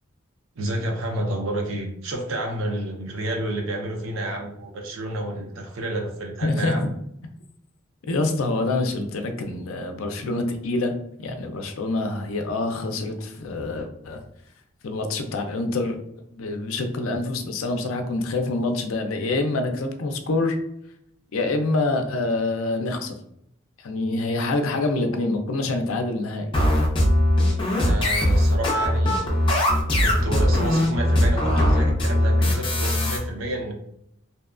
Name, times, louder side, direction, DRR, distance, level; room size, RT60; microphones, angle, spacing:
voice 1, 0.6-6.9 27.7-29.6 30.0-33.7, right 1 dB, 80° right, 1 dB, 0.6 m, -30 dB
voice 2, 6.4-6.7 8.1-14.2 14.8-16.0 16.3-20.6 21.3-23.2 23.8-26.5, left 2 dB, 80° left, 5 dB, 0.4 m, -26 dB
sound 1, 26.5-33.2, left 1 dB, 25° left, 0.5 m, -20 dB
2.7 x 2.2 x 2.4 m, 0.74 s
head